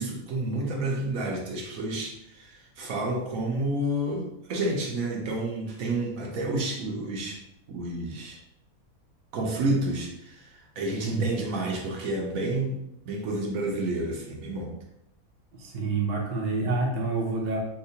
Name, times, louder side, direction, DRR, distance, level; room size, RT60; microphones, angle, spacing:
voice 1, 0.0-7.4 7.7-8.4 9.3-12.8 13.1-14.7, right 2 dB, 70° right, 0 dB, 1.0 m, -30 dB
voice 2, 15.5-17.6, right 3 dB, 45° right, -2 dB, 0.6 m, -28 dB
4.6 x 2.1 x 2.7 m, 0.83 s
omnidirectional pair, 1.6 m